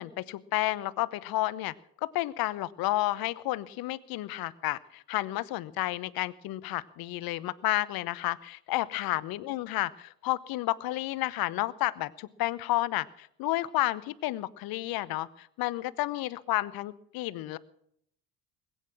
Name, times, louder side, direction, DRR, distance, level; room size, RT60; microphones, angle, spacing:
voice 1, 0.0-1.7 2.0-17.6, left 17 dB, 50° left, 18 dB, 0.9 m, -31 dB
21.0 x 9.1 x 6.2 m, 0.70 s
figure-of-eight pair, 60°, 46 cm